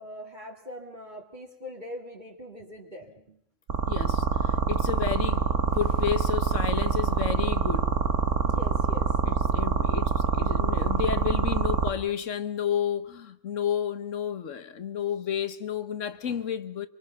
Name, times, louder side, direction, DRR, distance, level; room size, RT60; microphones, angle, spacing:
voice 1, 0.0-3.4 3.7-3.8 8.4-9.1, equal, 35° right, 2.5 m, -42 dB
sound 1, 3.7-11.9, right 5 dB, 70° right, 1.7 m, -25 dB
voice 2, 3.9-7.9 9.2-16.9, left 9 dB, 75° left, 1.4 m, -31 dB
25.5 x 24.0 x 5.7 m
omnidirectional pair, 1.3 m